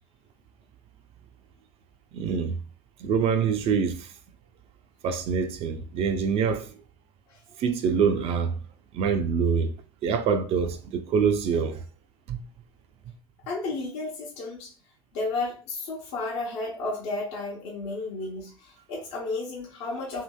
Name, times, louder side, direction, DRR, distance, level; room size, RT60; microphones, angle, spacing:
voice 1, 2.1-2.6 3.0-4.1 5.0-6.7 7.6-8.6 8.9-9.7 10.0-11.8 12.3-12.4, right 6 dB, 40° right, 0.4 m, -25 dB
voice 2, 13.5-14.7 15.1-20.2, left 3 dB, 55° left, 0.8 m, -33 dB
2.7 x 2.6 x 2.2 m
figure-of-eight pair, 75°, 15 cm